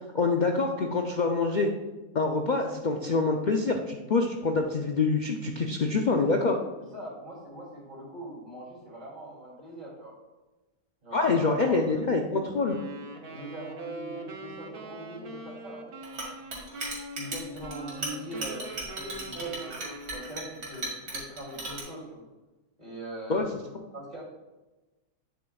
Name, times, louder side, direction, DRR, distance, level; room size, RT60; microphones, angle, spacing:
voice 1, 0.1-1.7 2.1-6.5 11.1-12.8 23.3-23.5, left 3 dB, 80° left, 2 dB, 0.4 m, -26 dB
voice 2, 6.8-10.1 11.0-12.1 13.3-16.6 17.1-19.8 20.1-22.2 22.8-23.4 23.9-24.2, right 1 dB, 30° right, -4 dB, 2.9 m, -42 dB
Wind instrument woodwind instrument, 12.6-20.6, right 2 dB, 45° right, 0.8 m, -42 dB
Chink clink, 16.0-21.8, right 2 dB, 75° right, 2.5 m, -36 dB
9.2 x 7.5 x 2.3 m, 1.1 s
omnidirectional pair, 1.6 m